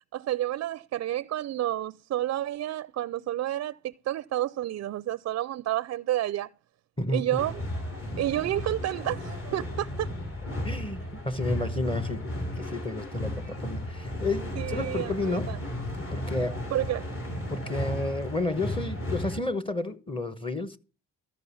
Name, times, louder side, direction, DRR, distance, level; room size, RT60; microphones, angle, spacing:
voice 1, 0.1-6.5 7.1-7.6 8.2-10.1 14.6-15.6 16.7-17.0, right 13 dB, 55° right, 0.4 m, -30 dB
voice 2, 7.0-7.4 10.6-12.2 12.5-15.5 16.0-16.6 17.3-20.8, left 2 dB, 15° left, 1.1 m, -31 dB
sound 1, 7.4-19.4, left 1 dB, 45° left, 6.0 m, -34 dB
13.5 x 5.2 x 7.0 m
cardioid pair, 90°, 30 cm